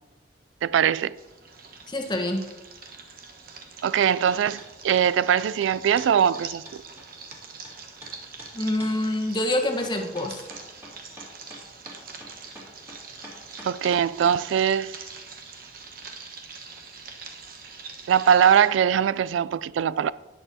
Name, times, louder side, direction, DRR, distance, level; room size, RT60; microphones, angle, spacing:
voice 1, 0.6-1.2 3.8-6.8 13.6-15.0 18.1-20.1, right 8 dB, 90° right, 0.3 m, -21 dB
sound 1, 1.1-18.7, right 5 dB, 50° right, 1.3 m, -44 dB
voice 2, 1.9-2.5 8.5-10.4, left 1 dB, 25° left, 1.2 m, -26 dB
sound 2, 4.3-4.7 4.9-7.7 8.0-8.1 8.4-8.5 8.8-8.9 9.8-14.4, equal, 10° right, 2.5 m, -44 dB
18.5 x 6.9 x 2.8 m
head